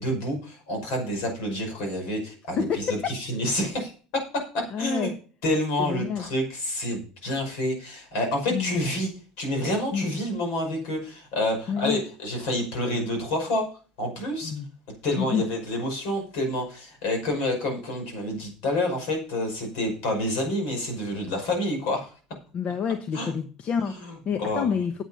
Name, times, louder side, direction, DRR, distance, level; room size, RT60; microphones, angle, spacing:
voice 1, 0.0-5.1 5.4-9.1 9.4-13.7 14.0-14.5 15.0-22.1 23.1-23.3 23.8-24.8, left 1 dB, 65° left, 2 dB, 5.7 m, -28 dB
voice 2, 2.6-3.1 4.7-5.1 5.8-6.2 8.5-8.7 9.9-10.1 11.7-12.0 14.4-14.7 15.2-15.4 22.5-23.9 24.2-24.9, left 7 dB, 45° left, 9 dB, 1.1 m, -28 dB
8.8 x 8.4 x 5.6 m, 0.39 s
hypercardioid pair, 75°, 3 cm